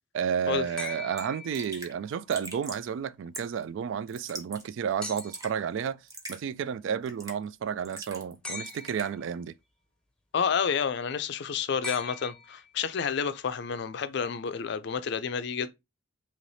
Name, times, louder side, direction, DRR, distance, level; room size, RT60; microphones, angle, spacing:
voice 1, 0.1-6.0 6.3-9.5, right 7 dB, 75° right, 0.3 m, -31 dB
sound 1, 0.8-2.1 5.0-5.6 8.4-9.2 11.8-12.9 14.5-14.6, left 3 dB, 5° left, 0.6 m, -40 dB
Raindrop / Drip, 0.8-0.9 1.2-1.3 1.5-1.9 2.3-2.9 3.3-3.6 4.1-4.6 4.9-5.5 6.1-6.4 7.1-7.5 7.9-8.4 8.7-9.1, right 1 dB, 20° right, 0.9 m, -41 dB
voice 2, 10.3-15.7, left 6 dB, 60° left, 0.4 m, -30 dB
3.2 x 2.9 x 4.0 m
head